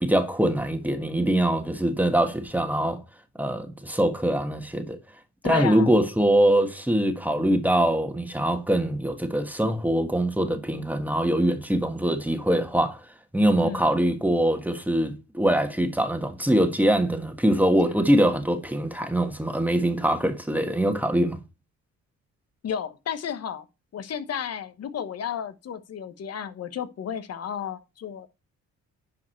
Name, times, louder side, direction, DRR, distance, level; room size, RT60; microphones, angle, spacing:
voice 1, 0.0-3.0 3.4-5.0 5.4-13.0 13.3-21.4, right 1 dB, 5° right, 1.5 m, -23 dB
voice 2, 5.4-6.0 13.6-13.9 22.6-23.6 23.9-28.3, left 8 dB, 55° left, 1.1 m, -32 dB
11.0 x 4.9 x 4.5 m
cardioid pair, 90°, 30 cm